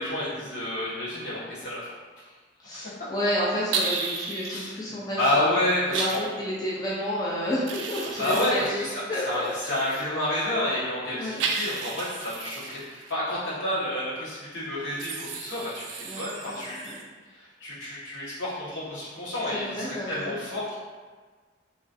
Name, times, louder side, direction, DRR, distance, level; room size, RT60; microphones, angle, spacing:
voice 1, 0.0-1.9 2.2-2.3 4.5-4.7 5.2-6.2 8.2-8.9 9.2-17.0 17.6-20.7, left 1 dB, 90° left, -10 dB, 1.2 m, -29 dB
voice 2, 2.6-5.5 5.9-10.0 11.1-11.4 16.0-16.2 16.5-16.6 16.8-17.0 19.5-20.4, equal, 20° left, -6 dB, 0.5 m, -31 dB
sound 1, 3.7-4.6 5.9-6.2 7.7-10.0 11.4-13.1 15.0-17.0, right 4 dB, 85° right, 0.4 m, -33 dB
3.0 x 2.5 x 2.6 m, 1.4 s
head